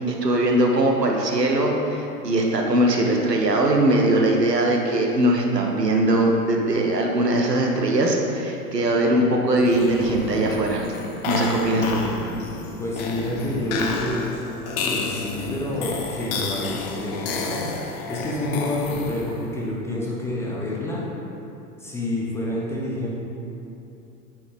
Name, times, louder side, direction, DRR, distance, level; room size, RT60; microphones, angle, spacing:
voice 1, 0.0-10.9 11.2-12.0, right 1 dB, 85° right, 1 dB, 0.9 m, -21 dB
sound 1, 9.6-19.5, left 4 dB, 40° left, 0.8 m, -30 dB
voice 2, 12.8-14.3 14.8-17.7 18.1-21.0 21.8-23.2, left 1 dB, 5° left, -6 dB, 0.4 m, -28 dB
8.8 x 4.1 x 3.5 m, 2.9 s
figure-of-eight pair, 95°, 47 cm